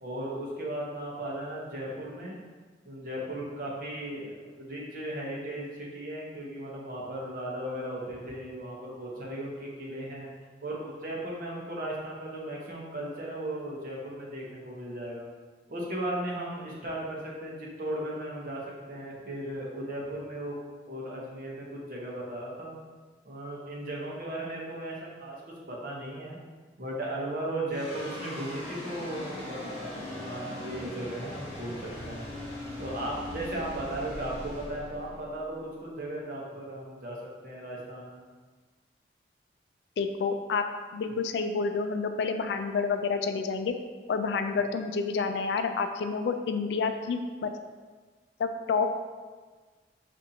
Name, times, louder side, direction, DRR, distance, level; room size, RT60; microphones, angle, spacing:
voice 1, 0.0-2.4 2.8-10.3 10.6-15.3 15.7-20.6 20.9-22.7 23.2-26.4 26.8-32.3 32.8-38.2, right 1 dB, 50° right, -4 dB, 0.8 m, -36 dB
sound 1, 27.7-36.2, left 1 dB, 20° left, 1.3 m, -40 dB
voice 2, 40.0-40.7 40.9-43.7 44.1-47.5 48.4-48.9, left 5 dB, 75° left, 8 dB, 0.3 m, -29 dB
5.4 x 2.5 x 2.7 m, 1.4 s
head